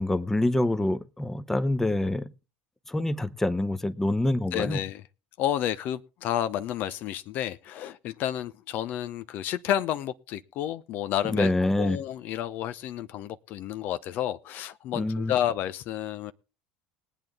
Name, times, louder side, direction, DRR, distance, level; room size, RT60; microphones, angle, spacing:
voice 1, 0.0-2.3 2.9-4.8 11.3-12.0 14.9-15.3, left 1 dB, 10° left, 0.9 m, -26 dB
voice 2, 4.5-5.0 5.4-11.5 11.8-16.3, left 11 dB, 55° left, 0.8 m, -30 dB
21.0 x 9.1 x 3.6 m
hypercardioid pair, 70°, 4 cm